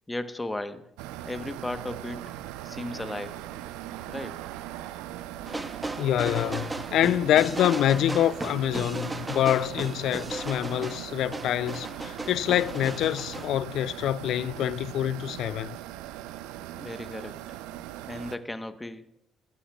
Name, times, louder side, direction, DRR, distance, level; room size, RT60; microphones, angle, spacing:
voice 1, 0.1-0.8 1.2-2.2 2.6-3.4 4.1-4.4 16.7-17.4 18.1-19.1, left 1 dB, 15° left, 1.0 m, -35 dB
sound 1, 1.0-18.4, right 13 dB, 80° right, 0.4 m, -40 dB
sound 2, 5.5-13.5, right 2 dB, 15° right, 0.7 m, -36 dB
voice 2, 6.0-15.8, left 11 dB, 65° left, 0.3 m, -26 dB
20.0 x 11.5 x 2.3 m
hypercardioid pair, 55°, 0 cm